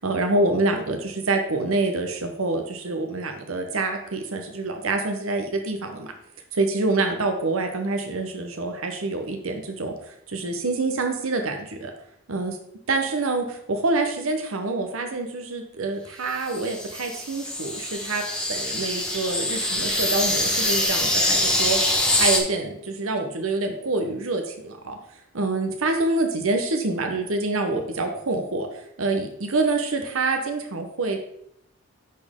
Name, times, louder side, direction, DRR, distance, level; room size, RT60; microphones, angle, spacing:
voice 1, 0.0-6.1 6.5-11.9 12.3-12.6 12.9-18.2 18.5-21.8 22.1-25.0 25.3-31.2, right 3 dB, 70° right, 5 dB, 0.9 m, -26 dB
sound 1, 16.3-22.4, left 1 dB, 5° left, 1.1 m, -24 dB
10.0 x 4.4 x 3.6 m, 0.74 s
head